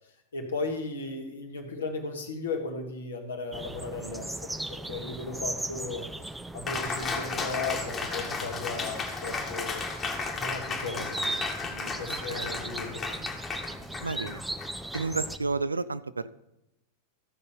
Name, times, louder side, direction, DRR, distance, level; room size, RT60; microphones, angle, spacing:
voice 1, 0.3-6.1 6.5-11.2 11.6-13.2, left 3 dB, 70° left, 3 dB, 1.5 m, -36 dB
sound 1, 3.5-15.4, right 1 dB, 5° right, 0.4 m, -38 dB
Cheering, 6.7-15.6, left 4 dB, 20° left, 1.5 m, -35 dB
voice 2, 12.1-12.5 14.0-14.4 14.9-16.3, right 3 dB, 80° right, 15 dB, 0.4 m, -31 dB
14.0 x 5.4 x 5.4 m, 0.89 s
figure-of-eight pair, 90°, 0 cm